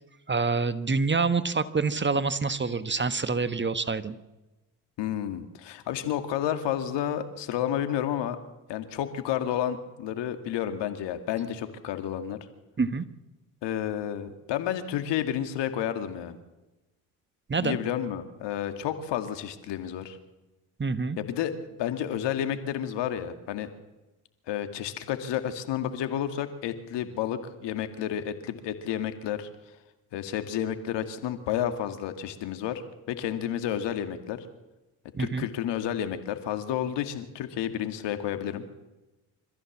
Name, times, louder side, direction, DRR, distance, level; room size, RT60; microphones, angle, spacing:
voice 1, 0.3-4.2 12.8-13.0 17.5-17.8 20.8-21.2 35.1-35.5, right 4 dB, 25° right, 12 dB, 1.4 m, -26 dB
voice 2, 5.0-8.4 8.7-12.4 13.6-16.4 17.6-20.2 21.2-21.5 21.8-23.7 24.5-29.5 30.1-32.8 33.1-34.5 35.2-38.6, left 10 dB, 70° left, 8 dB, 2.2 m, -31 dB
25.5 x 14.5 x 7.4 m, 1.1 s
hypercardioid pair, 60°, 43 cm